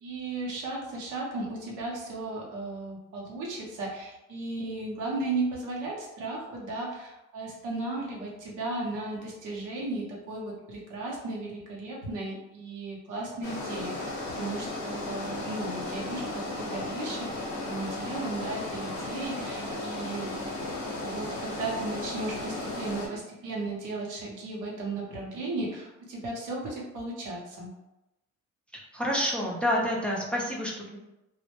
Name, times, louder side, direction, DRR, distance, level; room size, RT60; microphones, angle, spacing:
voice 1, 0.0-17.3 17.6-20.4 21.0-27.7, right 2 dB, 85° right, -3 dB, 0.8 m, -35 dB
sound 1, 13.4-23.1, left 2 dB, 85° left, 0.7 m, -35 dB
voice 2, 28.7-31.0, equal, 5° left, -3 dB, 0.5 m, -29 dB
2.1 x 2.0 x 2.9 m, 0.94 s
cardioid pair, 90°, 30 cm